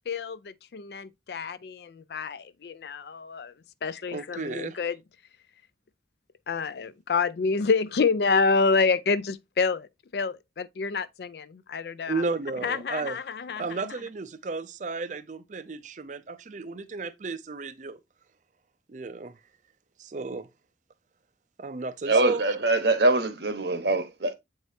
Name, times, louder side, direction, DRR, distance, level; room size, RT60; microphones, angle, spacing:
voice 1, 0.1-3.5 3.8-5.0 6.5-12.2 12.6-13.9, left 4 dB, 65° left, 0.4 m, -28 dB
voice 2, 4.1-4.8 12.1-13.2 13.5-18.0 18.9-19.4 20.0-20.5 21.6-22.4, right 3 dB, 45° right, 0.5 m, -33 dB
voice 3, 22.1-24.3, right 2 dB, 70° right, 1.1 m, -23 dB
7.8 x 4.7 x 2.7 m
head